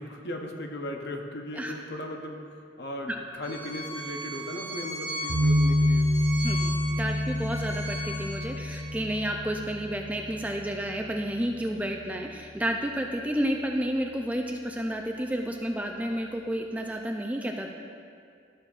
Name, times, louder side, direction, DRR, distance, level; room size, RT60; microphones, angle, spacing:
voice 1, 0.0-2.4 2.8-6.1, left 1 dB, 60° left, 3 dB, 0.8 m, -37 dB
Bowed string instrument, 3.4-8.8, equal, 30° left, 1.3 m, -37 dB
sound 1, 5.3-12.3, left 1 dB, 60° right, 0.7 m, -28 dB
voice 2, 6.4-17.7, equal, 10° right, 2 dB, 0.3 m, -31 dB
12.5 x 6.4 x 2.4 m, 2.3 s
head